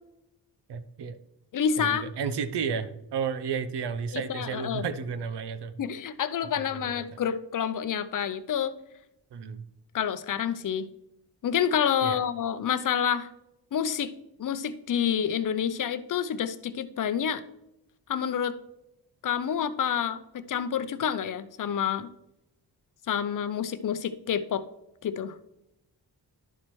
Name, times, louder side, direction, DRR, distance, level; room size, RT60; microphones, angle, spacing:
voice 1, 0.7-1.2 1.8-5.8 6.6-7.0 9.3-9.6 12.0-12.2, right 6 dB, 90° right, 12 dB, 0.8 m, -32 dB
voice 2, 1.5-2.1 4.1-4.8 5.8-8.8 9.9-10.9 11.4-13.3 13.7-14.1 14.4-17.4 18.1-18.6 19.2-22.1 23.1-24.6 25.0-25.4, left 8 dB, 50° left, 13 dB, 0.5 m, -28 dB
11.0 x 7.3 x 3.1 m, 0.89 s
wide cardioid pair, 155°, 40 cm